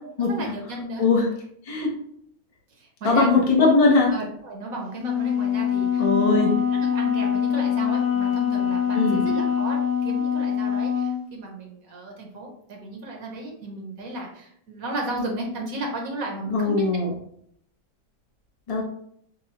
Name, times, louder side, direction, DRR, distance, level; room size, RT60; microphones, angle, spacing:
voice 1, 0.0-1.1 2.8-3.3 4.1-16.9, right 2 dB, 60° right, 0 dB, 1.2 m, -34 dB
voice 2, 3.0-4.1 6.0-6.5 9.0-9.3 16.5-17.1 18.7-18.8, left 3 dB, 35° left, -2 dB, 0.6 m, -20 dB
Wind instrument woodwind instrument, 5.0-11.3, left 8 dB, 60° left, 1.0 m, -24 dB
6.5 x 2.2 x 2.9 m, 0.67 s
omnidirectional pair, 1.7 m